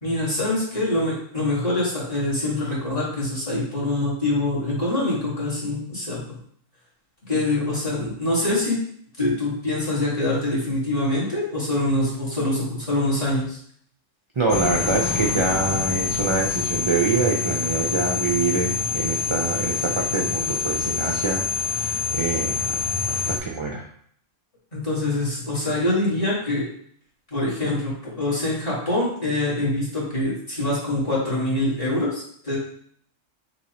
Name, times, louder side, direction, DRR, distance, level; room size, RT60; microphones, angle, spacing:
voice 1, 0.0-6.4 7.3-8.8 9.2-13.6 24.7-26.6 27.3-32.6, left 2 dB, 25° left, -8 dB, 1.8 m, -24 dB
voice 2, 14.4-22.8 23.1-23.8, right 4 dB, 45° right, 0 dB, 0.4 m, -25 dB
sound 1, 14.5-23.4, left 5 dB, 85° left, 1.1 m, -26 dB
6.2 x 2.8 x 2.9 m, 0.62 s
omnidirectional pair, 1.3 m